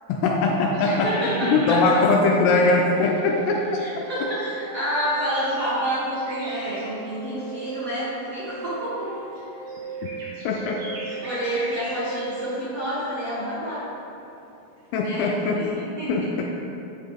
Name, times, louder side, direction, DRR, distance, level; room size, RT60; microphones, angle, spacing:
voice 1, 0.1-3.8 10.4-10.8 14.9-15.7 16.1-16.4, left 3 dB, 80° left, 0 dB, 2.3 m, -21 dB
sound 1, 0.7-7.2 7.7-8.0 8.3-12.4 12.8-12.9 13.2-13.5 14.0-14.2 14.6-15.7, right 1 dB, 80° right, 1.3 m, -43 dB
voice 2, 0.8-2.0 3.8-9.1 11.2-13.9 15.0-16.1, equal, 60° right, -13 dB, 1.5 m, -29 dB
sound 2, 1.7-3.6 4.0-5.8 6.2-8.0 8.4-10.3 10.6-12.5, right 6 dB, 65° left, 1.3 m, -37 dB
11.0 x 3.7 x 3.5 m, 2.8 s
omnidirectional pair, 4.7 m